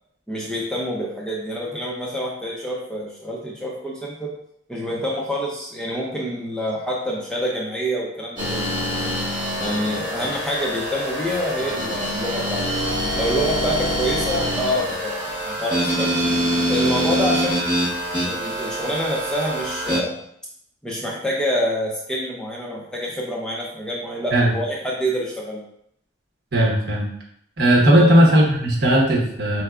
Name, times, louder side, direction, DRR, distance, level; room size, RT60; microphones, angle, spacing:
voice 1, 0.3-4.3 4.7-8.7 9.6-12.7 13.1-16.2 16.7-17.7 18.2-20.1 20.8-25.6 27.9-28.1, equal, 5° left, -3 dB, 0.5 m, -27 dB
sound 1, 8.4-20.0, equal, 25° right, 1.2 m, -25 dB
voice 2, 26.5-27.1 27.6-29.6, equal, 55° right, -2 dB, 1.0 m, -16 dB
4.4 x 3.3 x 2.4 m, 0.71 s
head